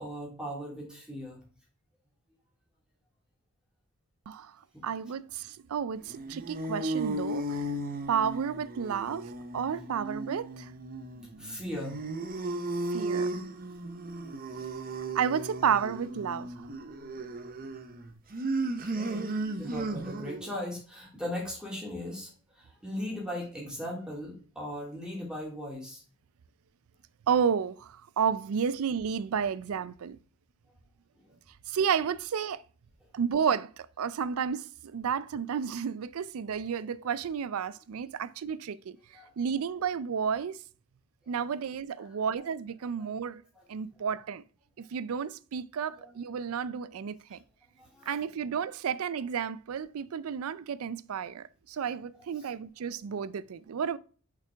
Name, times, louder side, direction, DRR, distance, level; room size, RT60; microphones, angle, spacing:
voice 1, 0.0-1.4 4.7-4.8 11.4-12.0 18.8-19.2 19.6-22.3 22.5-26.0 31.2-31.4 39.1-39.3 41.9-42.1 43.0-43.3 43.5-43.6 45.9-46.2 47.8-48.2 52.3-52.5, left 1 dB, 5° right, 2.8 m, -38 dB
voice 2, 4.8-7.7 8.1-9.2 9.5-10.7 12.9-13.3 15.1-16.7 19.5-19.7 27.3-30.2 31.7-32.6 33.1-34.7 34.9-39.0 39.4-40.6 41.3-43.4 43.7-44.4 44.8-47.4 48.1-54.0, right 7 dB, 75° right, 0.4 m, -31 dB
sound 1, 6.0-20.5, right 2 dB, 40° right, 0.8 m, -35 dB
6.0 x 5.8 x 3.4 m
head